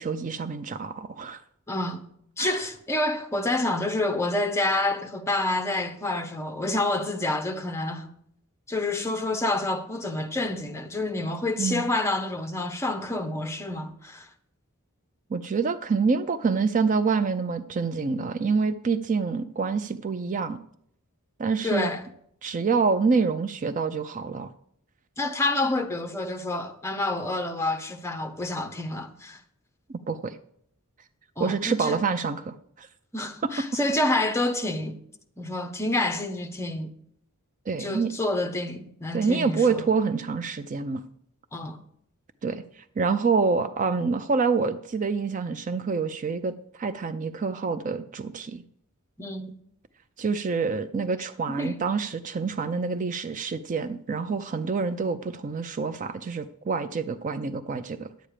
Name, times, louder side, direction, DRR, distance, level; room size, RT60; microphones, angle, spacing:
voice 1, 0.0-1.4 2.4-2.6 11.6-11.8 15.3-20.6 21.4-21.9 22.4-24.5 29.9-30.4 31.4-32.9 37.7-38.1 39.1-41.0 42.4-48.6 50.2-58.1, right 4 dB, 35° right, 0.4 m, -27 dB
voice 2, 1.7-2.0 2.4-8.1 8.7-14.3 21.6-22.0 25.2-29.4 31.4-32.0 33.1-35.0 35.4-36.9 37.8-39.8 41.5-41.8 49.2-49.5 51.5-51.8, left 2 dB, 15° left, 0.9 m, -28 dB
10.0 x 8.6 x 5.0 m
head